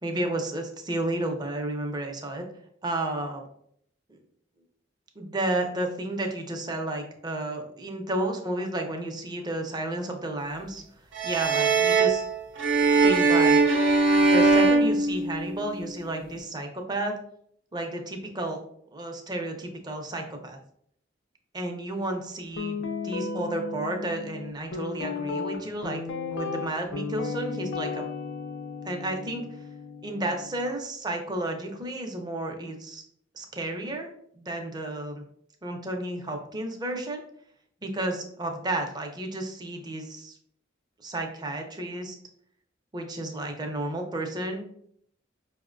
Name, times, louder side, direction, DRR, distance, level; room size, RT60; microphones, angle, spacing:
voice 1, 0.0-2.4 2.8-3.4 4.1-4.2 5.2-10.8 11.2-12.2 13.0-13.6 14.1-17.1 17.7-18.6 18.9-20.6 21.5-28.0 28.8-29.6 30.0-33.0 33.3-35.2 35.6-37.2 37.8-40.4 41.0-42.2 42.9-44.6, right 1 dB, 20° right, 3 dB, 0.5 m, -32 dB
sound 1, 11.1-15.8, right 3 dB, 85° right, 0.7 m, -21 dB
Guitar, 22.6-30.7, left 4 dB, 75° left, 0.4 m, -34 dB
4.9 x 2.1 x 2.4 m, 0.66 s
head